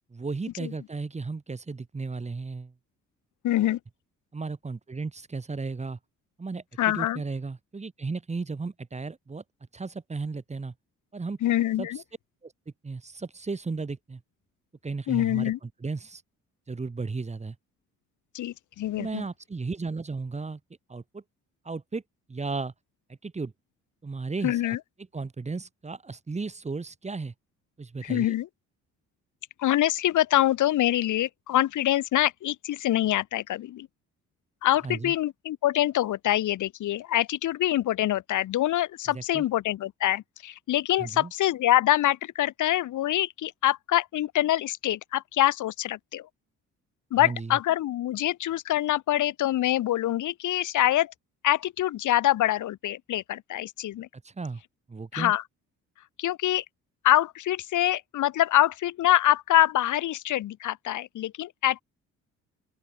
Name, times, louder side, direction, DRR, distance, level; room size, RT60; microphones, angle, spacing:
voice 1, 0.1-2.7 4.3-6.0 6.4-9.4 9.7-10.7 11.1-11.4 11.8-11.9 12.4-12.5 12.8-14.2 14.8-15.5 15.8-16.2 16.7-17.5 18.9-20.6 20.9-21.2 21.6-22.0 22.3-22.7 23.2-23.5 24.0-24.8 25.1-27.3 27.8-28.3 34.8-35.1 39.1-39.4 41.0-41.3 47.2-47.6 54.2-54.6 54.9-55.3, right 4 dB, 20° right, 1.7 m, -34 dB
voice 2, 3.4-3.8 6.8-7.2 11.4-12.0 15.1-15.6 18.3-19.2 24.4-24.8 28.0-28.5 29.6-33.9 34.6-46.3 47.1-51.1 51.4-54.1 55.1-55.4 56.2-56.6 57.0-61.8, left 13 dB, 80° left, 2.4 m, -25 dB
open air
cardioid pair, 90°, 30 cm